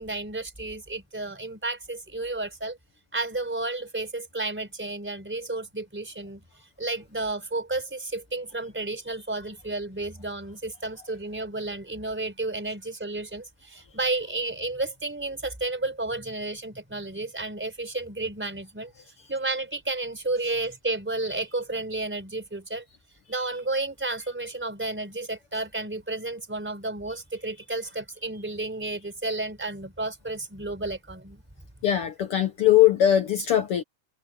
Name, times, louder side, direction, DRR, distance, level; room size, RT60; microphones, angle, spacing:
voice 1, 0.0-2.8 3.1-6.4 6.8-18.9 19.3-22.8 23.3-31.4, right 2 dB, 5° right, 3.9 m, -32 dB
voice 2, 31.8-33.8, left 11 dB, 65° left, 1.4 m, -20 dB
omnidirectional pair, 3.5 m